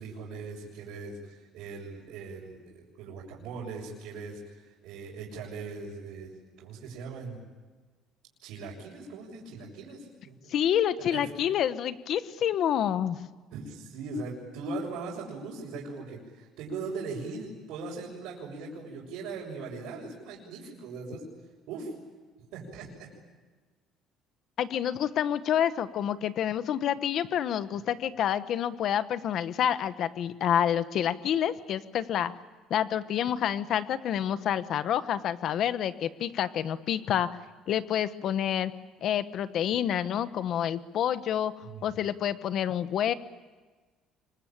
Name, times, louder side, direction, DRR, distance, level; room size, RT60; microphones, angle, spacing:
voice 1, 0.0-4.4 4.8-6.3 6.6-7.4 8.4-10.4 11.1-11.3 13.5-21.2 21.7-21.9 22.5-23.1 41.6-41.8, right 3 dB, 75° right, -5 dB, 6.3 m, -39 dB
voice 2, 10.5-13.2 24.6-32.3 32.7-37.4 37.7-38.7 39.0-41.5 41.8-43.1, left 10 dB, 45° left, 13 dB, 1.1 m, -28 dB
26.0 x 23.5 x 8.9 m, 1.3 s
cardioid pair, 175°, 0 cm